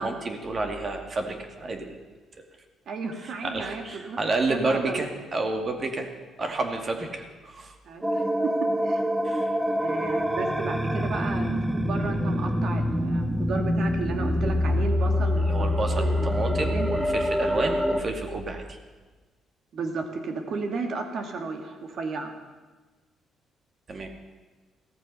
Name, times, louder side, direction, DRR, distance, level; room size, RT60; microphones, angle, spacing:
voice 1, 0.0-2.0 3.4-6.1 6.4-7.8 9.2-9.6 15.5-18.8 23.9-24.1, right 2 dB, 45° right, 4 dB, 2.2 m, -30 dB
voice 2, 2.9-4.2 4.5-5.1 7.8-9.1 9.8-16.9 19.7-22.3, right 4 dB, 65° right, 4 dB, 2.3 m, -33 dB
sound 1, 8.0-18.0, left 1 dB, 10° right, 1.3 m, -25 dB
15.5 x 14.0 x 5.6 m, 1.3 s
supercardioid pair, 70°, 0 cm